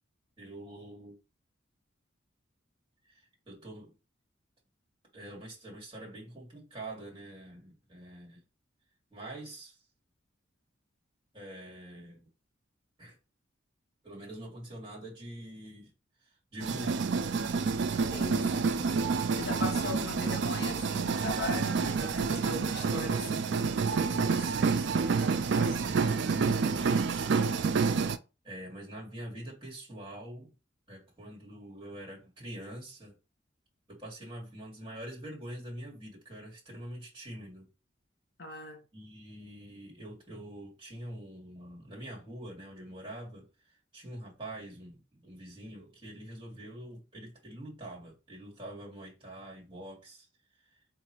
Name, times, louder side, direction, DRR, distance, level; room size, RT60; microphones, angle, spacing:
voice 1, 0.4-1.2 3.1-3.9 5.1-8.4 9.1-9.8 11.3-12.3 13.0-13.2 14.0-15.9 16.2-17.3 19.8-20.0 21.8-22.1 22.4-27.6 28.4-30.5 30.9-33.2 33.9-37.7 38.9-43.5 43.9-50.3, right 1 dB, 25° right, 1.9 m, -45 dB
sound 1, 16.6-28.2, right 5 dB, 60° right, 0.3 m, -28 dB
voice 2, 18.1-18.9 19.4-23.6 38.4-38.8, left 3 dB, 50° left, 1.0 m, -40 dB
3.9 x 2.6 x 4.3 m
head